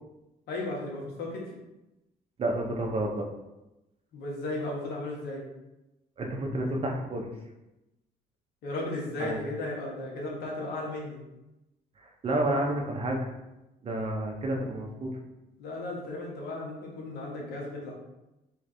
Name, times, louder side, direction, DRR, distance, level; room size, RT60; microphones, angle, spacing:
voice 1, 0.5-1.4 4.1-5.4 8.6-11.2 15.6-17.9, left 2 dB, 70° left, -2 dB, 1.3 m, -35 dB
voice 2, 2.4-3.3 6.2-7.3 9.2-9.4 12.0-13.2 13.8-15.1, right 1 dB, 35° right, 1 dB, 0.7 m, -30 dB
3.2 x 3.2 x 3.8 m, 0.96 s
cardioid pair, 110°, 17 cm